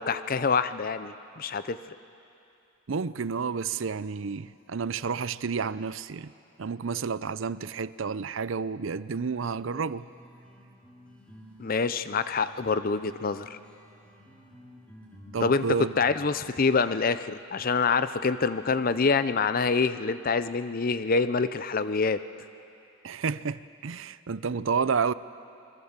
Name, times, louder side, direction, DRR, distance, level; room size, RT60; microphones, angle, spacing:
voice 1, 0.0-1.8 11.6-13.6 15.4-15.6 16.0-22.2, left 4 dB, 45° left, 0.5 m, -26 dB
voice 2, 2.9-6.3 6.6-10.1 15.3-15.9 23.0-25.1, right 5 dB, 65° right, 0.5 m, -30 dB
sound 1, 9.5-16.4, equal, 5° left, 4.3 m, -52 dB
27.0 x 21.5 x 7.3 m
head